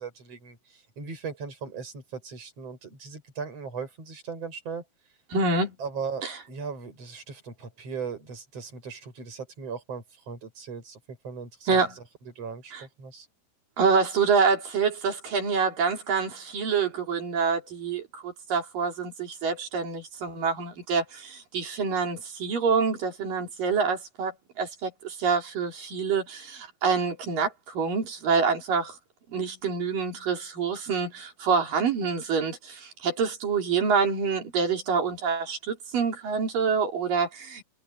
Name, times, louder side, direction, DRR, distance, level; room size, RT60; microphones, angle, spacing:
voice 1, 0.0-4.8 5.8-12.0 12.4-13.3, right 5 dB, 40° right, 8.1 m, -38 dB
voice 2, 5.3-5.7 6.2-6.4 11.7-11.9 12.7-12.8 13.8-29.0 29.3-37.6, right 5 dB, 60° right, 5.5 m, -26 dB
omnidirectional pair, 4.6 m